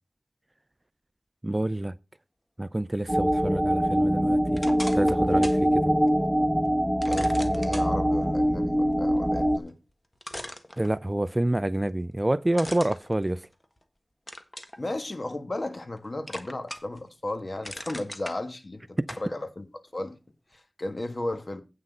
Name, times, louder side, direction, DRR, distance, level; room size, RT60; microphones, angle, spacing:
voice 1, 1.4-1.9 2.6-4.6 4.9-5.7 10.8-13.5 19.0-19.1, right 1 dB, 25° right, 0.4 m, -27 dB
sound 1, 3.1-9.6, equal, 5° right, 0.8 m, -23 dB
sound 2, 4.5-5.7 6.1-6.2 7.0-7.9 9.7-9.8 10.2-11.3 12.5-13.8 14.3-14.8 15.3-16.0 16.3-17.0 17.4-18.4 19.1-19.3, left 1 dB, 20° left, 1.4 m, -39 dB
voice 2, 7.0-9.8 14.8-19.7 19.9-20.2 20.5-21.6, left 1 dB, 45° left, 1.5 m, -34 dB
8.7 x 6.1 x 5.4 m
wide cardioid pair, 50°, 0 cm